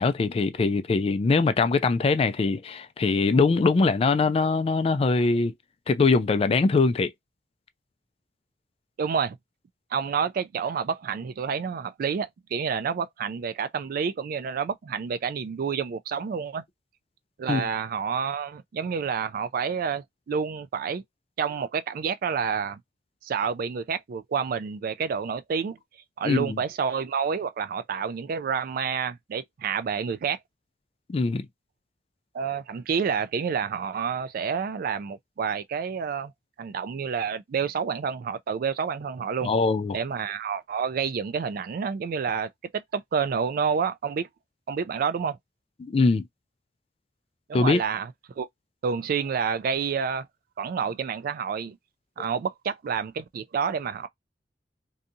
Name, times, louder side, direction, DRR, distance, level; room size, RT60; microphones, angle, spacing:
voice 1, 0.0-5.5 5.9-7.1 17.5-17.7 26.2-26.6 31.1-31.5 39.4-40.0 45.8-46.3 47.5-47.8, left 4 dB, 35° left, 0.3 m, -22 dB
voice 2, 9.0-9.4 9.9-16.6 17.4-21.0 21.4-22.8 23.2-25.8 26.2-30.4 32.3-36.3 36.6-39.5 39.9-44.3 44.7-45.4 47.5-48.1 48.4-48.5 48.8-50.3 50.6-51.8 52.2-54.1, right 6 dB, 55° right, 0.3 m, -29 dB
2.7 x 2.3 x 2.6 m
head